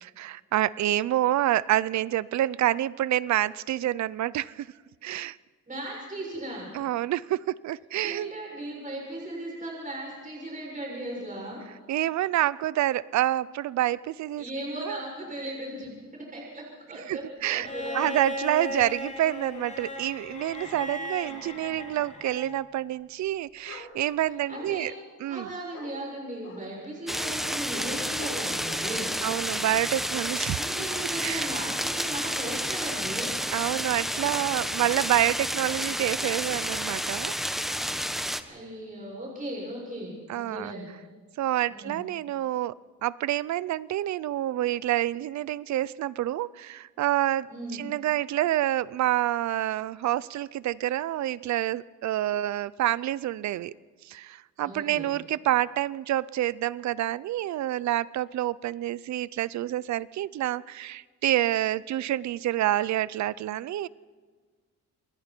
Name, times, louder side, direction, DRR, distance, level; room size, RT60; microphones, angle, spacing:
voice 1, 0.0-4.7 5.0-5.4 6.7-8.3 11.9-14.4 14.8-14.9 17.1-17.7 17.9-24.9 25.2-25.5 29.2-30.6 31.2-31.5 33.5-37.6 40.3-40.7 41.4-42.7 43.0-53.7 54.0-63.9, right 13 dB, 65° right, 20 dB, 0.6 m, -28 dB
voice 2, 5.7-6.7 8.0-11.6 14.4-18.0 24.5-25.0 25.3-29.1 30.6-33.4 38.5-40.9 41.7-42.0 47.5-47.8 54.6-55.1, right 1 dB, 25° right, -2 dB, 7.1 m, -37 dB
Bowed string instrument, 17.6-22.7 24.1-24.2, left 1 dB, 25° left, 3.7 m, -36 dB
Bark, 23.7-23.9 24.5-25.1 25.7-25.9 26.4-26.6 27.1-27.3 27.7-27.9 28.2-28.8 29.2-29.4, left 4 dB, 60° left, 6.4 m, -43 dB
sound 1, 27.1-38.4, equal, ahead, 1.4 m, -30 dB
28.5 x 20.5 x 4.5 m, 1.5 s
cardioid pair, 90°, 30 cm